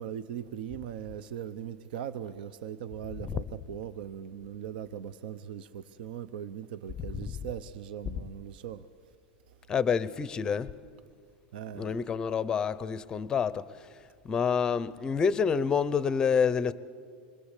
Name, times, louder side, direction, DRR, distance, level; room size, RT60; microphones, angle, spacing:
voice 1, 0.0-8.9 11.5-12.0, right 9 dB, 75° right, 0.9 m, -39 dB
voice 2, 9.7-10.7 11.7-13.8 14.2-16.7, left 6 dB, 15° left, 0.6 m, -28 dB
27.0 x 24.0 x 8.3 m
supercardioid pair, 175°, 5 cm